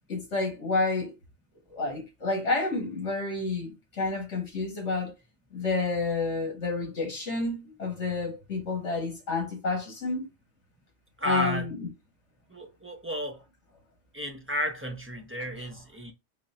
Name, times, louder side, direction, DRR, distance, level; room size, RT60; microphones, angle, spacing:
voice 1, 0.1-1.1 1.7-5.1 5.5-10.3 11.2-11.9, left 3 dB, 70° left, 1.8 m, -29 dB
voice 2, 11.2-11.7 12.5-13.4 14.1-16.1, equal, 20° right, 0.4 m, -33 dB
3.9 x 2.0 x 4.1 m
omnidirectional pair, 1.2 m